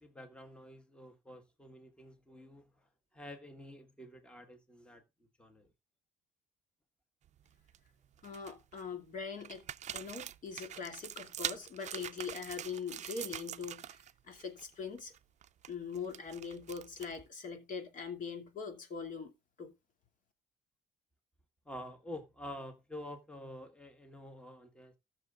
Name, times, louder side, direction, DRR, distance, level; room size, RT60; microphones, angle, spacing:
voice 1, 0.0-5.0 5.4-5.7 21.6-25.0, left 1 dB, 5° left, 1.5 m, -48 dB
sound 1, 7.3-7.8 8.2-8.8 9.4-14.1 14.4-14.6 15.0-17.3, right 10 dB, 45° right, 0.5 m, -44 dB
voice 2, 8.2-9.7 9.9-15.1 15.7-19.3 19.6-19.7, left 5 dB, 50° left, 2.7 m, -42 dB
18.0 x 6.6 x 2.5 m
cardioid pair, 110°, 17 cm